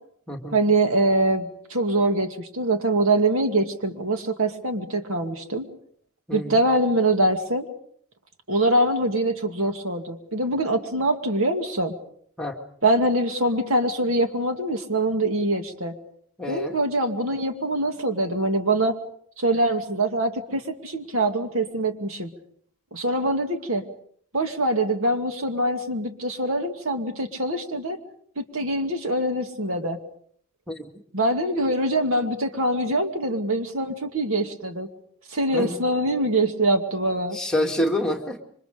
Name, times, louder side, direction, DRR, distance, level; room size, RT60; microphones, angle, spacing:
voice 1, 0.5-5.7 6.3-7.7 8.5-11.9 12.8-15.9 16.5-19.0 19.4-22.3 22.9-23.8 24.3-28.0 28.4-30.0 31.1-34.9 35.3-37.4, right 1 dB, 70° right, 6 dB, 2.3 m, -24 dB
voice 2, 16.4-16.7 30.7-30.9 35.5-35.8 37.3-38.4, left 1 dB, 5° left, 0 dB, 2.2 m, -27 dB
27.5 x 24.5 x 5.2 m, 0.63 s
head